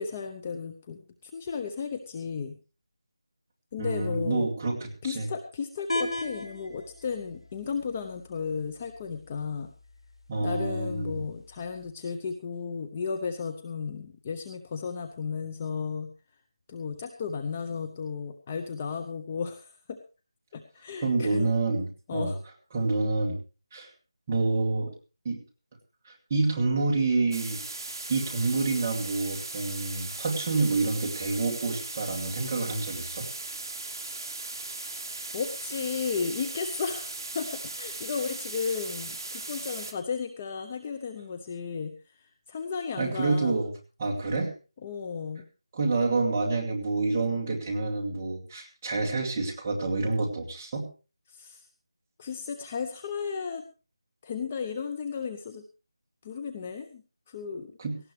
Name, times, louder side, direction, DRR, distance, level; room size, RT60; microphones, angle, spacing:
voice 1, 0.0-2.6 3.7-4.5 5.0-9.7 10.4-16.1 16.7-20.0 20.5-21.5 22.1-22.4 35.3-43.6 44.8-45.4 51.3-51.7 52.2-53.6 54.2-55.6 56.2-57.8, left 5 dB, 15° left, 7 dB, 0.7 m, -34 dB
voice 2, 3.8-5.3 10.3-11.2 21.0-22.3 22.7-23.4 23.7-23.9 24.3-24.9 25.2-25.4 26.1-27.6 28.1-33.3 43.0-43.7 44.0-44.5 45.7-50.9 57.8-58.0, right 3 dB, 15° right, -2 dB, 2.5 m, -28 dB
sound 1, 5.9-11.9, left 2 dB, 85° left, 3.0 m, -39 dB
sound 2, 27.3-39.9, right 2 dB, 45° right, 2.7 m, -38 dB
18.0 x 16.0 x 3.2 m, 0.34 s
figure-of-eight pair, 175°, 3 cm